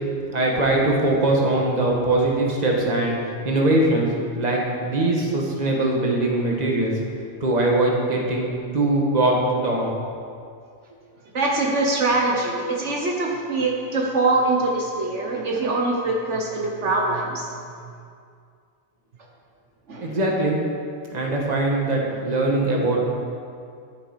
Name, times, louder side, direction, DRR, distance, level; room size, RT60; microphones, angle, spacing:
voice 1, 0.3-3.1 3.4-4.1 4.3-6.9 7.4-8.5 8.7-9.9 20.0-20.6 21.1-23.1, right 2 dB, 35° right, -1 dB, 1.7 m, -21 dB
voice 2, 11.3-17.5 19.9-20.1, right 2 dB, 70° right, -1 dB, 1.5 m, -23 dB
11.5 x 10.5 x 4.8 m, 2.3 s
omnidirectional pair, 1.3 m